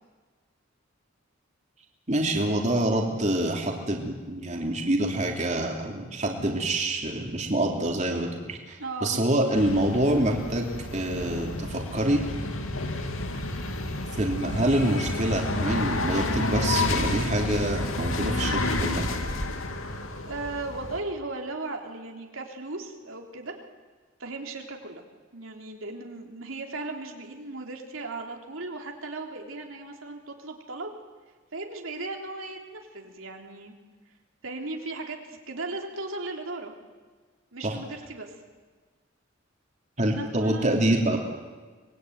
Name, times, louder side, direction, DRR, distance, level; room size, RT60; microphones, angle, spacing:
voice 1, 2.1-12.2 14.2-19.1 37.6-37.8 40.0-41.2, right 1 dB, 35° right, 1 dB, 3.1 m, -26 dB
voice 2, 8.8-9.2 20.3-23.6 24.2-25.0 25.3-31.0 31.5-33.7 34.4-36.7 37.5-38.4 40.0-40.7, right 2 dB, 80° right, 2 dB, 3.6 m, -36 dB
sound 1, 9.5-21.0, left 2 dB, 85° left, 2.7 m, -30 dB
25.0 x 21.5 x 9.5 m, 1.4 s
head